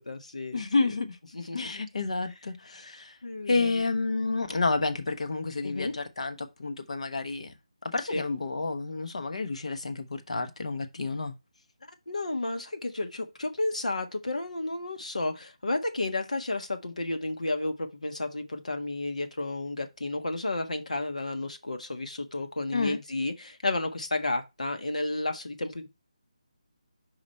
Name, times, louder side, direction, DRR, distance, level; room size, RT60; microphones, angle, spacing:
voice 1, 0.0-0.6 1.3-1.6 3.2-3.7 5.6-5.9 8.1-8.2 12.1-25.9, left 2 dB, 85° left, 1.4 m, -32 dB
voice 2, 0.5-1.2 1.5-3.2 3.5-7.5 7.8-11.3 22.7-23.0, left 3 dB, 65° left, 1.2 m, -30 dB
5.0 x 5.0 x 4.4 m
figure-of-eight pair, 165°, 4 cm